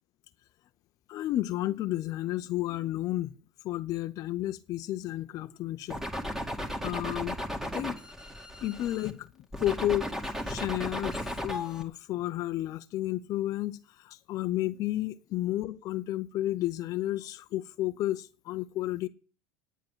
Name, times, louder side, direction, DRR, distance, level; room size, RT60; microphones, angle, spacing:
voice 1, 1.1-3.3 3.6-6.0 6.4-7.4 7.7-8.0 8.6-19.1, left 14 dB, 50° left, 0.7 m, -32 dB
sound 1, 5.9-9.1 9.5-11.8, equal, 5° right, 2.2 m, -35 dB
9.2 x 9.0 x 7.4 m
supercardioid pair, 120°, 8 cm